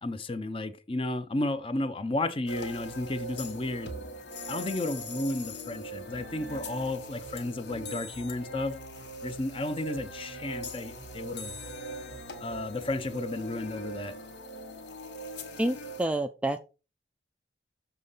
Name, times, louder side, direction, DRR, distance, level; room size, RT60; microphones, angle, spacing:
voice 1, 0.0-3.9 4.5-8.8 9.2-11.5 12.4-14.2, left 2 dB, 30° left, 0.6 m, -33 dB
sound 1, 2.5-16.1, equal, 75° left, 1.4 m, -41 dB
sound 2, 6.1-13.1, right 3 dB, 55° right, 0.5 m, -53 dB
voice 2, 15.6-16.6, right 1 dB, 5° right, 0.3 m, -28 dB
6.9 x 3.7 x 5.5 m
head